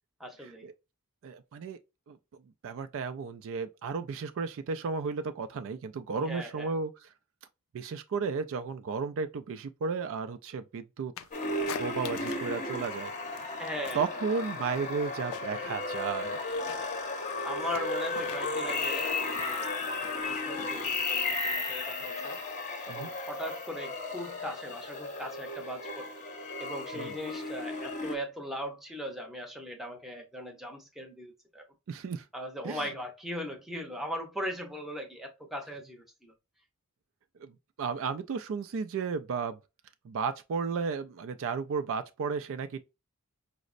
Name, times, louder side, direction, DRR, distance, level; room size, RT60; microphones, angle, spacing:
voice 1, 0.2-0.6 6.1-6.7 13.6-14.2 17.4-22.4 22.9-26.1 26.6-31.7 32.3-36.3, equal, ahead, 0.7 m, -39 dB
voice 2, 1.2-1.8 2.1-2.2 2.6-6.9 7.7-11.1 11.6-13.1 13.9-16.4 22.9-23.1 26.9-27.2 31.9-32.2 32.6-32.9 37.4-37.5 37.8-39.6 40.0-42.8, right 5 dB, 60° right, 0.3 m, -33 dB
sound 1, 11.2-12.6 12.8-14.1 14.4-15.8 16.1-21.5, left 9 dB, 65° left, 0.3 m, -46 dB
sound 2, 11.3-28.2, left 3 dB, 35° left, 0.7 m, -34 dB
5.0 x 2.0 x 2.4 m
head